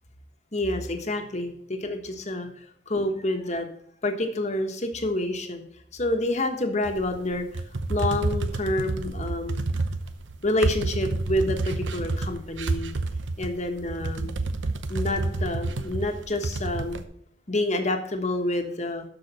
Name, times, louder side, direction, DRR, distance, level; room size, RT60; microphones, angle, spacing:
voice 1, 0.5-2.5 2.9-3.7 4.0-5.6 5.9-7.6 7.9-9.6 10.4-12.9 13.4-14.3 14.9-17.0 17.5-19.0, left 1 dB, 40° left, 5 dB, 1.3 m, -28 dB
sound 1, 6.8-17.0, right 3 dB, 80° right, 0.8 m, -29 dB
13.0 x 4.9 x 4.2 m, 0.67 s
head